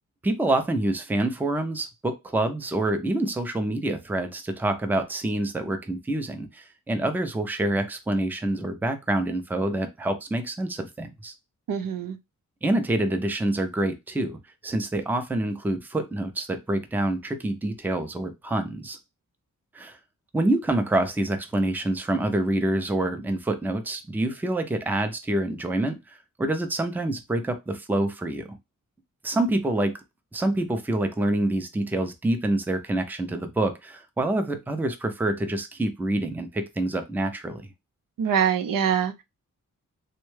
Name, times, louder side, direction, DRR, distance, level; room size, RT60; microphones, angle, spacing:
voice 1, 0.2-11.3 12.6-19.0 19.7-20.0 20.3-28.6 29.2-30.0 30.3-37.7, right 1 dB, 5° right, 0.4 m, -27 dB
voice 2, 11.7-12.2 38.2-39.2, right 8 dB, 85° right, 0.5 m, -24 dB
3.6 x 2.2 x 3.1 m
wide cardioid pair, 160°, 32 cm